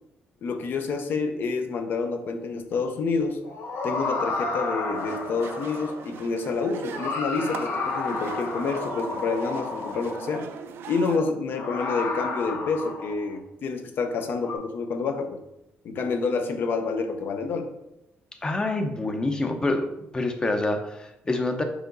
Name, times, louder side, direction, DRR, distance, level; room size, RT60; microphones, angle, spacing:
voice 1, 0.4-3.4 3.8-10.5 10.9-15.4 15.8-17.7, left 4 dB, 55° left, 7 dB, 0.8 m, -28 dB
sound 1, 3.4-6.2 6.8-10.6 11.5-13.4 14.4-14.5, left 3 dB, 80° left, 1.1 m, -32 dB
sound 2, 4.9-11.2, right 7 dB, 70° right, 0.5 m, -40 dB
voice 2, 18.4-19.9 20.1-21.6, left 2 dB, 20° left, 6 dB, 0.7 m, -26 dB
4.9 x 4.9 x 3.9 m, 0.85 s
cardioid pair, 130°, 4 cm